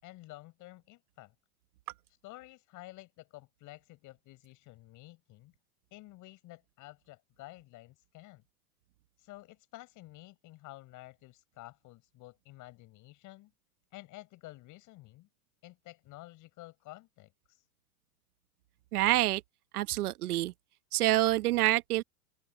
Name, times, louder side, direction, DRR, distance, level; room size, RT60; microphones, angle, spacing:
voice 1, 0.0-1.3 2.2-5.5 5.9-8.4 9.2-13.5 13.9-15.3 15.6-17.6, left 18 dB, 40° left, 6.7 m, -51 dB
voice 2, 18.9-19.4 19.7-20.5 20.9-22.0, right 16 dB, 70° right, 1.4 m, -27 dB
open air
hypercardioid pair, 125°, 46 cm